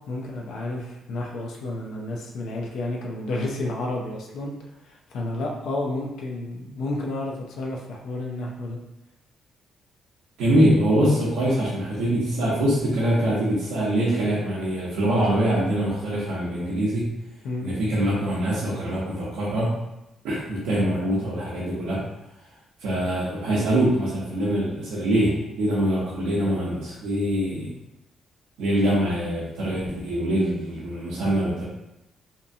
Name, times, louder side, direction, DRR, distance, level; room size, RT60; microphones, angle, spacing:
voice 1, 0.1-4.5 4.9-8.8 17.4-17.7, left 2 dB, 80° left, 0 dB, 0.5 m, -31 dB
voice 2, 10.4-17.1 17.6-19.8 20.2-22.0 22.8-27.7 28.6-31.7, right 1 dB, 90° right, -7 dB, 0.6 m, -24 dB
2.7 x 2.3 x 2.6 m, 0.90 s
cardioid pair, 90°, 0 cm